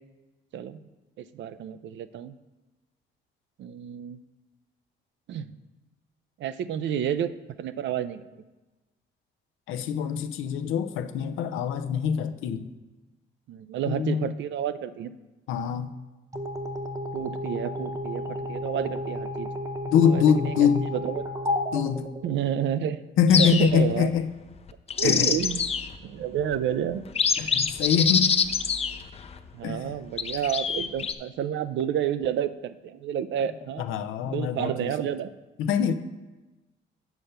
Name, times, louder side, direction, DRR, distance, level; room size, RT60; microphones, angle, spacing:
voice 1, 1.2-2.3 3.6-4.2 5.3-5.5 6.4-7.3 7.6-8.2 13.5-15.1 17.1-19.5 20.0-21.2 22.2-23.1 23.4-24.1 25.0-25.7 26.0-27.1 29.5-33.9 34.3-35.3, right 9 dB, 70° right, 13 dB, 0.5 m, -30 dB
voice 2, 9.7-12.7 13.9-14.3 15.5-15.9 19.9-20.9 21.7-22.1 23.2-24.3 25.0-25.3 27.4-28.4 29.6-30.0 33.8-34.9 35.6-35.9, left 7 dB, 85° left, 10 dB, 0.5 m, -24 dB
sound 1, 16.3-22.8, left 1 dB, 15° right, 0.8 m, -33 dB
sound 2, 23.3-24.0 24.7-25.9 26.5-26.6 27.1-29.4 30.2-31.1, left 6 dB, 30° left, 0.5 m, -25 dB
7.0 x 4.4 x 6.5 m, 1.1 s
cardioid pair, 90°, 20 cm